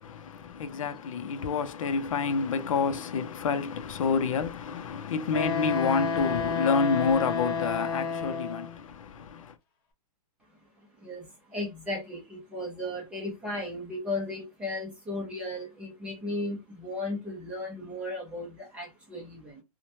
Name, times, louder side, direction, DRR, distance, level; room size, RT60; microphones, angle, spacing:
voice 1, 0.0-9.5, left 5 dB, 60° left, 0.5 m, -28 dB
Wind instrument woodwind instrument, 5.3-8.8, left 5 dB, 35° left, 0.8 m, -30 dB
voice 2, 11.0-19.6, left 1 dB, 5° right, 0.5 m, -35 dB
3.0 x 2.1 x 2.6 m
hypercardioid pair, 175°, 19 cm